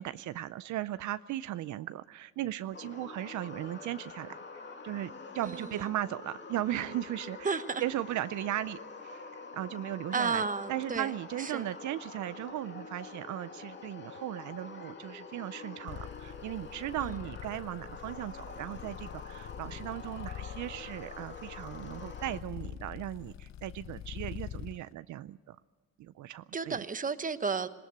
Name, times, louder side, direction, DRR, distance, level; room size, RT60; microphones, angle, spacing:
voice 1, 0.0-10.4 10.7-25.6 26.0-26.8, right 13 dB, 75° right, 0.6 m, -37 dB
sound 1, 2.7-22.4, left 4 dB, 40° left, 2.2 m, -46 dB
voice 2, 5.4-5.9 7.4-7.8 10.1-11.7 17.0-17.2 26.5-27.7, right 5 dB, 25° right, 1.1 m, -33 dB
sound 2, 15.9-24.8, left 10 dB, 65° left, 0.7 m, -45 dB
20.0 x 19.0 x 8.0 m
cardioid pair, 90°, 30 cm